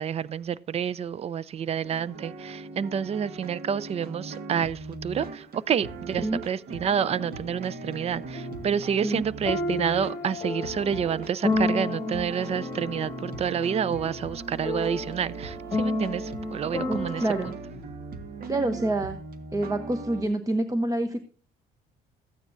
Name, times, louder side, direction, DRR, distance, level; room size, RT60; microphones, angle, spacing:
voice 1, 0.0-17.6, right 8 dB, 40° right, 0.5 m, -29 dB
sound 1, 1.8-20.3, right 3 dB, 60° right, 1.5 m, -39 dB
sound 2, 7.2-7.3 8.3-8.7 9.5-17.5, left 2 dB, 15° left, 1.9 m, -32 dB
voice 2, 16.9-17.5 18.5-19.2 19.5-21.2, right 1 dB, 20° right, 0.9 m, -27 dB
14.5 x 9.3 x 2.6 m
cardioid pair, 110°, 17 cm